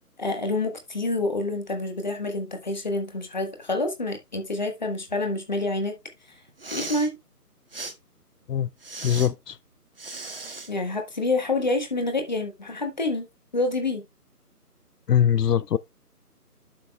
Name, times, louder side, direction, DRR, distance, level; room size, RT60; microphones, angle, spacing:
voice 1, 0.2-5.9 6.7-7.1 10.7-13.3 13.5-14.0, left 2 dB, 30° left, 1.4 m, -27 dB
Respiratory sounds, 6.5-7.1 7.7-7.9 8.8-9.3 10.0-10.7, right 3 dB, 35° right, 1.1 m, -36 dB
voice 2, 9.0-9.6 15.1-15.8, left 9 dB, 75° left, 0.6 m, -22 dB
11.0 x 6.0 x 2.3 m
figure-of-eight pair, 170°, 48 cm